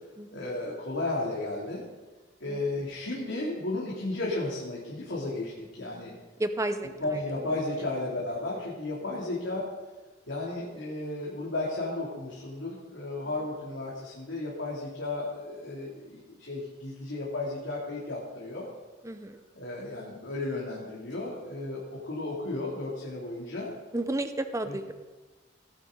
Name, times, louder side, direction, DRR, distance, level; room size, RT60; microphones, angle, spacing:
voice 1, 0.3-1.8 2.4-6.1 7.0-9.7 10.3-18.7 19.5-23.7 24.6-24.8, left 2 dB, 85° left, -5 dB, 2.7 m, -34 dB
voice 2, 6.4-6.9 19.0-19.4 23.9-24.9, right 1 dB, 15° right, 9 dB, 0.6 m, -31 dB
17.5 x 10.5 x 3.8 m, 1.2 s
head